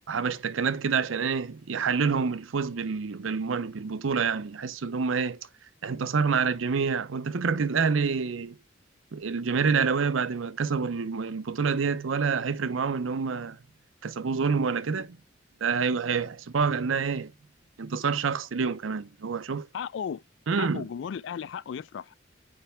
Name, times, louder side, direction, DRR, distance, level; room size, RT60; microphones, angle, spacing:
voice 1, 0.1-5.4 5.8-8.6 9.1-13.6 14.0-15.2 15.6-17.3 17.8-19.7 20.5-20.9, right 5 dB, 85° right, 0.6 m, -27 dB
voice 2, 19.7-20.2 20.6-22.2, left 7 dB, 65° left, 0.3 m, -35 dB
8.8 x 3.3 x 3.3 m
head